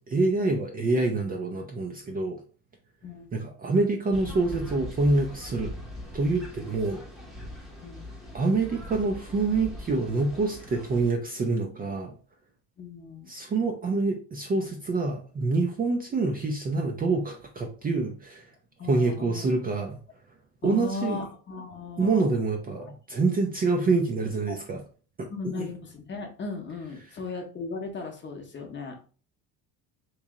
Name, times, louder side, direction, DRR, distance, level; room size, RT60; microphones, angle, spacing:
voice 1, 0.0-2.4 3.3-5.7 6.1-7.0 8.3-12.1 13.3-18.5 18.9-20.0 20.6-21.2 22.0-24.8 25.6-25.7, right 3 dB, 25° right, 2 dB, 0.5 m, -26 dB
voice 2, 3.0-3.3 7.8-8.1 12.8-13.3 18.8-19.5 20.6-22.3 22.8-22.9 24.5-24.6 25.3-29.1, left 4 dB, 30° left, 3 dB, 0.8 m, -37 dB
sound 1, 4.1-11.1, left 1 dB, ahead, 0.8 m, -41 dB
3.1 x 2.7 x 3.6 m, 0.38 s
cardioid pair, 125°, 38 cm